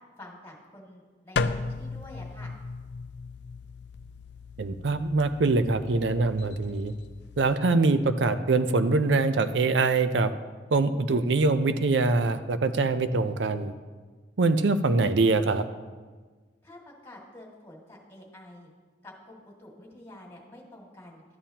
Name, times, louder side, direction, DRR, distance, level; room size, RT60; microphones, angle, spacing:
voice 1, 0.2-2.6 16.6-18.7 19.0-21.2, left 1 dB, 15° left, -3 dB, 2.1 m, -48 dB
sound 1, 1.4-7.6, left 4 dB, 70° left, 0.4 m, -36 dB
voice 2, 4.6-6.9 7.4-10.3 10.7-13.7 14.4-15.7, right 3 dB, 85° right, 11 dB, 0.5 m, -24 dB
13.0 x 9.0 x 2.9 m, 1.4 s
head